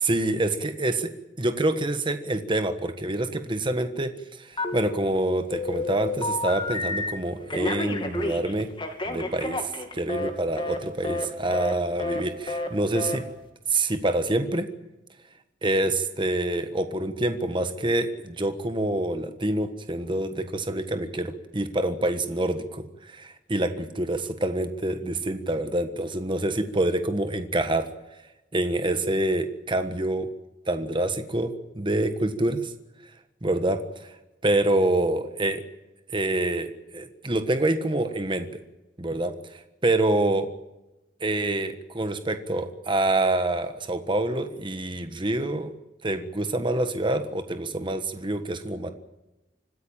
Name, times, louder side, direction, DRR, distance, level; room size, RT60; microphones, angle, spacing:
voice 1, 0.0-4.1 4.4-8.7 9.0-13.2 13.7-14.7 15.6-27.9 28.5-30.3 30.7-32.7 33.4-34.1 34.4-35.6 36.1-38.5 39.0-39.3 39.8-40.5 41.2-45.7 46.0-48.9, right 1 dB, 25° right, 9 dB, 1.4 m, -26 dB
Telephone, 4.6-5.2 5.5-7.1 7.5-10.3 10.6-10.8 11.0-11.3 11.5-11.7 12.0-12.2 12.5-12.7 12.9-13.2, left 2 dB, 25° left, 2.5 m, -30 dB
25.5 x 15.0 x 8.9 m, 1.0 s
head